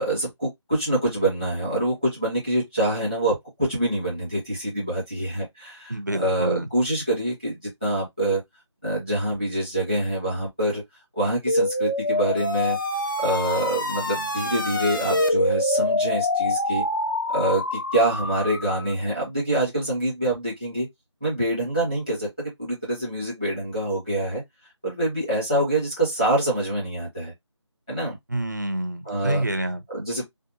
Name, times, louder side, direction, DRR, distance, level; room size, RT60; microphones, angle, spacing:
voice 1, 0.0-8.4 8.8-10.8 11.2-12.8 13.2-16.8 17.3-20.9 21.2-24.4 24.8-27.3 27.9-28.2 29.0-29.4 29.9-30.2, right 1 dB, 10° left, 0.9 m, -25 dB
voice 2, 5.9-6.7 28.3-29.8, right 1 dB, 40° right, 0.4 m, -27 dB
sound 1, 11.5-18.9, left 1 dB, 45° left, 0.4 m, -25 dB
2.6 x 2.4 x 2.6 m
figure-of-eight pair, 175°, 16 cm